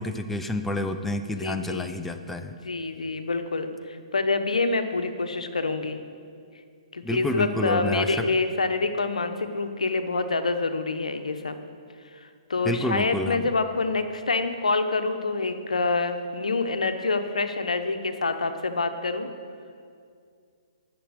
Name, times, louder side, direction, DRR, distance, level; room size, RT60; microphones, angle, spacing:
voice 1, 0.0-2.5 7.0-8.3 12.7-13.5, left 1 dB, 5° left, 6 dB, 0.5 m, -29 dB
voice 2, 1.4-1.9 2.6-6.0 6.9-11.6 12.1-19.3, left 3 dB, 80° left, 8 dB, 0.9 m, -27 dB
11.0 x 6.9 x 7.9 m, 2.3 s
figure-of-eight pair, 130°, 4 cm